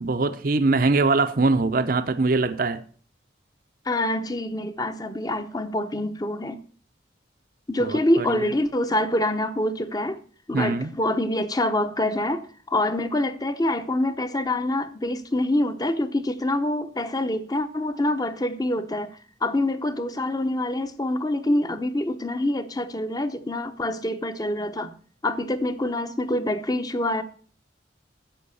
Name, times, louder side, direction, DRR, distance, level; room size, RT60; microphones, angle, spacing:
voice 1, 0.0-2.8 7.8-8.4 10.5-10.9, right 3 dB, 50° right, 0.7 m, -22 dB
voice 2, 3.8-6.6 7.7-10.2 10.5-25.0 25.2-27.2, left 1 dB, 20° left, 0.9 m, -26 dB
10.0 x 7.4 x 7.0 m
head